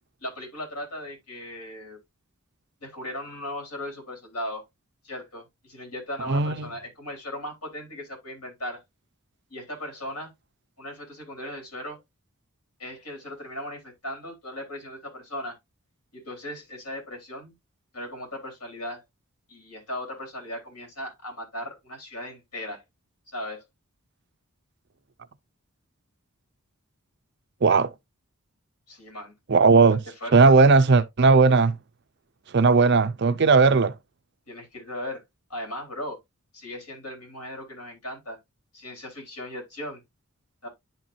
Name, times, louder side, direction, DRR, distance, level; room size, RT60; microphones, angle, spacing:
voice 1, 0.2-2.0 2.8-4.6 5.0-8.8 9.5-10.3 10.8-12.0 12.8-15.6 16.1-17.5 17.9-19.0 19.5-22.8 23.3-23.6 28.9-29.3 29.9-30.5 34.5-35.2 35.5-36.2 36.5-38.4 38.7-40.0 40.6-40.7, left 1 dB, 85° left, 4.1 m, -37 dB
voice 2, 6.3-6.7 27.6-27.9 29.5-30.0 30.3-31.7 32.5-33.9, right 4 dB, 50° right, 0.5 m, -17 dB
11.0 x 4.5 x 2.6 m
head